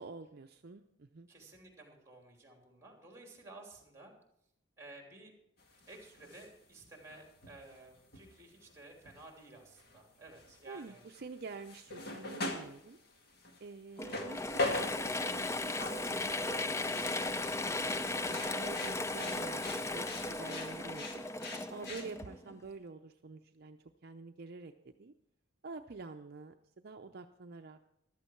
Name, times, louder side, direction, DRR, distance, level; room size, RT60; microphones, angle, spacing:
voice 1, 0.0-1.3 10.6-13.0 13.6-21.2 21.7-25.1 25.6-27.8, right 3 dB, 50° right, 6 dB, 0.6 m, -48 dB
voice 2, 1.3-4.1 4.8-5.3 5.9-11.0 21.9-22.2, right 2 dB, 15° right, 2 dB, 3.1 m, -54 dB
sound 1, 5.6-6.5 6.9-9.3 9.7-10.0 10.2-16.1 16.4-22.1, left 2 dB, 50° left, 1.8 m, -42 dB
Mechanisms / Drill, 14.0-22.6, left 2 dB, 15° left, 0.4 m, -36 dB
14.5 x 12.5 x 4.5 m, 0.75 s
head